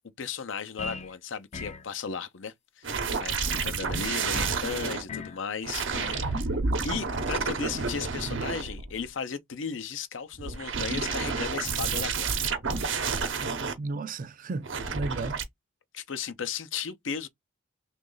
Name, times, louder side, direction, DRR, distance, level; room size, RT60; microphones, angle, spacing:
voice 1, 0.2-2.9 3.2-6.4 6.8-12.6 15.9-17.3, left 6 dB, 85° left, 0.6 m, -35 dB
sound 1, 0.8-1.2 1.5-1.9 4.3-4.6 5.1-5.4 5.9-6.3, left 4 dB, 35° left, 0.4 m, -38 dB
sound 2, 2.8-5.0 5.6-9.1 10.3-13.7 14.6-15.4, right 4 dB, 85° right, 0.8 m, -30 dB
voice 2, 13.8-15.4, right 3 dB, 45° right, 0.4 m, -34 dB
3.1 x 2.4 x 3.8 m
head